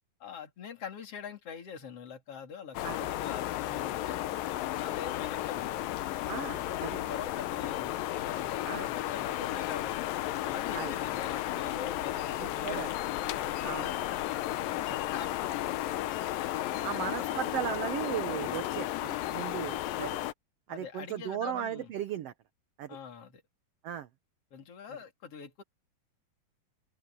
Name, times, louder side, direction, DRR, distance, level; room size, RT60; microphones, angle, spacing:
voice 1, 0.2-4.3 4.8-10.1 10.4-13.0 13.3-16.0 16.4-17.6 18.4-18.6 19.5-19.7 20.7-21.9 22.9-23.4 24.5-25.6, left 7 dB, 45° left, 3.5 m, -44 dB
sound 1, 2.7-20.3, left 14 dB, 90° left, 2.6 m, -34 dB
voice 2, 6.3-7.0 8.6-8.9 10.7-10.9 12.4-12.9 13.6-13.9 16.8-20.2 20.7-22.3 22.8-23.0 23.8-24.1, right 10 dB, 70° right, 1.5 m, -36 dB
open air
omnidirectional pair, 3.9 m